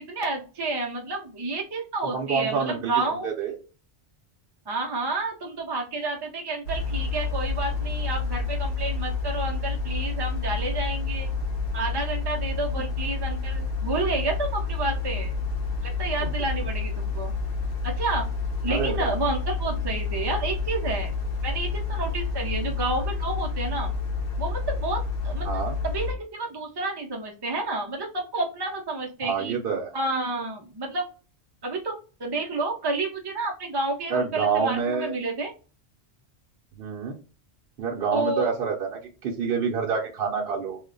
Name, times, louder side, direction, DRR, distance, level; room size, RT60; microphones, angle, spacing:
voice 1, 0.0-3.3 4.7-11.3 11.7-15.4 15.8-17.3 17.8-18.3 18.6-21.2 21.4-23.9 24.4-29.6 29.9-31.1 31.6-35.5 38.1-38.5, right 2 dB, 40° right, 0 dB, 0.3 m, -30 dB
voice 2, 2.0-3.5 16.2-16.3 18.7-19.1 22.4-22.7 25.4-25.8 29.2-29.9 34.1-35.1 36.7-37.2 37.8-40.8, right 5 dB, 60° right, -1 dB, 0.7 m, -28 dB
sound 1, 6.7-26.1, left 4 dB, 80° left, 1.1 m, -29 dB
2.8 x 2.1 x 3.7 m, 0.36 s
omnidirectional pair, 1.2 m